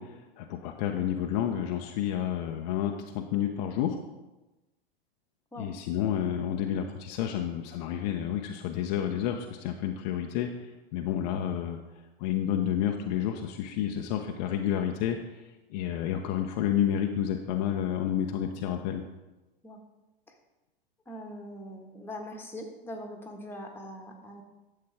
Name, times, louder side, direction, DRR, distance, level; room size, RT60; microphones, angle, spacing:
voice 1, 0.0-4.0 5.6-10.5 10.9-11.8 12.2-15.4 15.7-19.0, left 10 dB, 40° left, 3 dB, 0.9 m, -30 dB
voice 2, 21.1-24.4, equal, 5° left, 1 dB, 1.5 m, -42 dB
11.5 x 7.7 x 3.6 m, 1.0 s
figure-of-eight pair, 95°, 30 cm